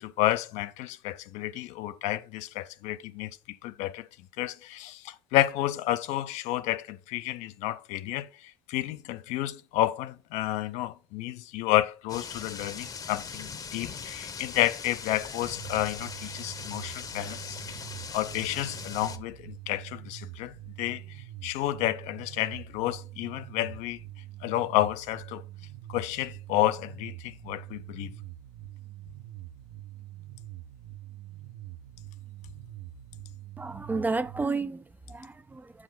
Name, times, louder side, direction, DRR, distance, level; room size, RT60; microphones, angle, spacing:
voice 1, 0.0-4.1 4.4-17.8 18.1-24.0 24.4-25.4 25.9-28.2, left 14 dB, 65° left, 0.5 m, -30 dB
sound 1, 12.1-19.2, left 6 dB, 30° left, 0.8 m, -40 dB
sound 2, 15.4-34.5, right 14 dB, 65° right, 0.8 m, -45 dB
voice 2, 33.6-35.8, right 3 dB, 15° right, 0.4 m, -32 dB
7.3 x 4.9 x 3.8 m
supercardioid pair, 95°, 13 cm